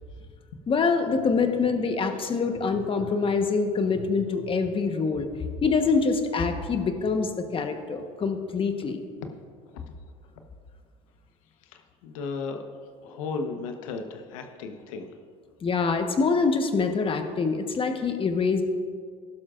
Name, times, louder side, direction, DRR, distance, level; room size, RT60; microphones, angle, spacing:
voice 1, 0.7-5.3 5.6-9.0 15.6-18.6, left 4 dB, 30° left, 6 dB, 1.2 m, -25 dB
voice 2, 11.6-12.6 13.0-15.1, left 4 dB, 80° left, 5 dB, 1.1 m, -35 dB
15.5 x 12.0 x 2.5 m, 2.1 s
supercardioid pair, 85°, 17 cm